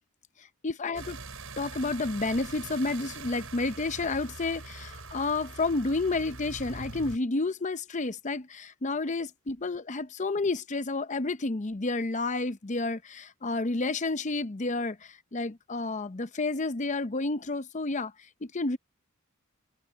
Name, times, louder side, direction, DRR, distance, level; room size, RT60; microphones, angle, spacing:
voice 1, 0.6-1.2 1.6-18.1 18.4-18.8, left 3 dB, 35° left, 0.7 m, -30 dB
sound 1, 0.9-7.2, right 3 dB, 75° right, 7.2 m, -43 dB
head